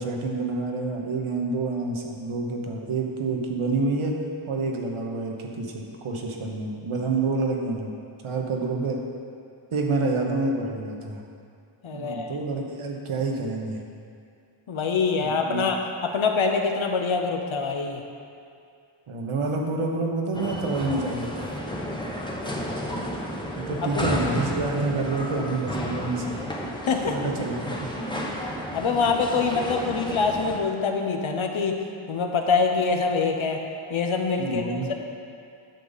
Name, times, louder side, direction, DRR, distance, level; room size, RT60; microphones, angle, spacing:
voice 1, 0.0-4.2 4.5-7.9 8.2-9.0 9.7-11.2 11.9-13.8 15.2-15.6 19.1-21.5 23.6-26.3 27.1-27.9 34.4-34.9, right 3 dB, 75° right, 0 dB, 1.1 m, -28 dB
voice 2, 11.8-12.3 14.7-18.0 23.8-24.0 26.9-27.2 28.7-31.8 32.1-33.6 33.9-34.9, left 4 dB, 70° left, 3 dB, 0.9 m, -25 dB
sound 1, 20.3-30.6, equal, 10° left, 0.9 m, -32 dB
8.9 x 6.7 x 4.0 m, 2.4 s
wide cardioid pair, 80°, 49 cm